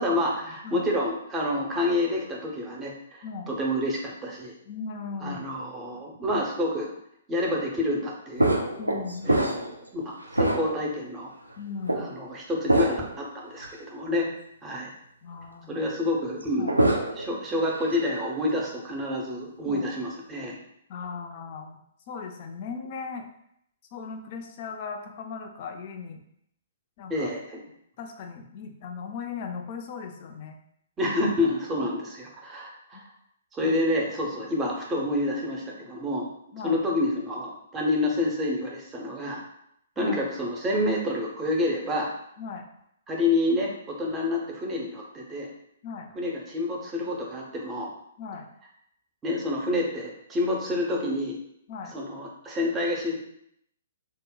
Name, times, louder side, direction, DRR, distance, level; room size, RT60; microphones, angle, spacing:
voice 1, 0.0-4.5 5.2-6.9 7.3-8.6 9.2-11.3 11.9-14.3 14.6-14.9 15.7-20.6 27.1-27.6 31.0-33.0 33.5-36.3 36.6-39.4 40.0-42.1 43.1-45.5 46.2-47.9 49.2-51.4 51.9-53.1, left 1 dB, 15° right, -2 dB, 0.6 m, -28 dB
voice 2, 3.2-3.5 4.7-5.4 8.8-9.3 11.6-12.2 15.2-15.7 16.6-16.7 19.7-19.9 20.9-21.8 22.1-23.3 23.9-26.2 27.0-27.3 28.0-30.6 32.9-33.0 33.6-33.8 36.5-36.8 40.0-40.2 42.4-42.7 45.8-46.1 48.2-48.5 51.7-52.0, left 5 dB, 40° left, 4 dB, 0.4 m, -37 dB
sound 1, 8.4-9.9 10.3-11.0 11.9-12.0 12.7-13.2 13.6-13.7 16.4-17.3 17.7-18.1, right 1 dB, 90° right, 0.3 m, -25 dB
2.1 x 2.0 x 3.7 m, 0.73 s
figure-of-eight pair, 120°, 0 cm